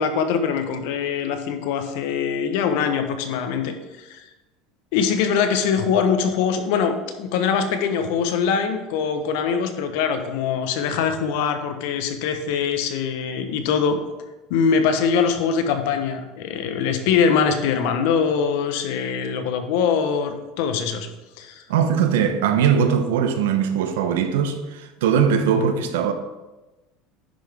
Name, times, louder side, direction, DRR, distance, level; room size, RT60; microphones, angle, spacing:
voice 1, 0.0-4.2 4.9-14.0 14.5-21.1 21.4-21.6, left 6 dB, 75° left, 1.0 m, -23 dB
voice 2, 21.7-26.1, right 7 dB, 85° right, 0.8 m, -20 dB
10.0 x 5.9 x 3.5 m
supercardioid pair, 115°, 0 cm